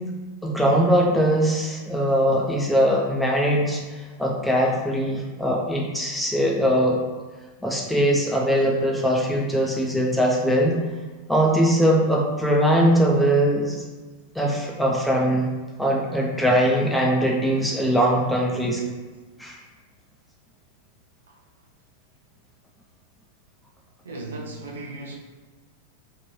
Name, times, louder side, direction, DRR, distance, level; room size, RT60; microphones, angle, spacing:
voice 1, 0.4-7.0 7.6-10.8 11.3-13.8 14.3-15.5 15.8-18.8 19.4-19.6, equal, 5° left, -2 dB, 0.6 m, -21 dB
voice 2, 24.0-25.1, right 2 dB, 65° right, 1 dB, 0.4 m, -36 dB
3.1 x 2.5 x 2.9 m, 1.3 s
figure-of-eight pair, 90°, 0 cm